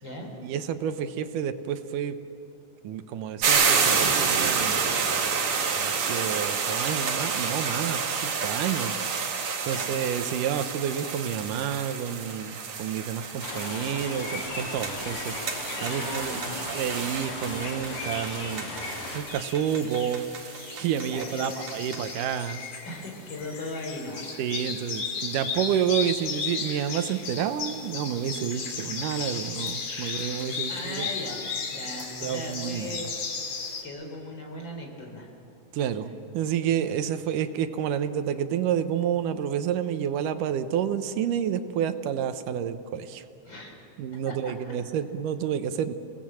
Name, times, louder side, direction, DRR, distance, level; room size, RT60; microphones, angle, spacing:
voice 1, 0.4-2.2 2.8-8.9 9.2-9.4 9.6-15.4 15.8-16.4 16.7-18.7 19.1-20.3 20.7-22.6 24.4-31.1 32.2-33.0 35.7-36.1 36.3-43.2 44.0-45.9, right 9 dB, 85° right, 10 dB, 2.6 m, -29 dB
sound 1, 3.4-22.1, right 5 dB, 60° right, 3.0 m, -29 dB
voice 2, 9.6-10.0 15.8-16.7 21.1-21.6 22.8-24.3 30.0-30.2 30.7-33.1 33.8-35.3 43.4-43.8 44.2-44.7, left 1 dB, 35° left, 1 dB, 4.7 m, -38 dB
sound 2, 13.4-19.2, left 2 dB, 90° left, 5.4 m, -36 dB
sound 3, 18.8-33.8, left 5 dB, 70° left, 4.1 m, -35 dB
29.0 x 19.0 x 7.6 m, 2.9 s
omnidirectional pair, 3.6 m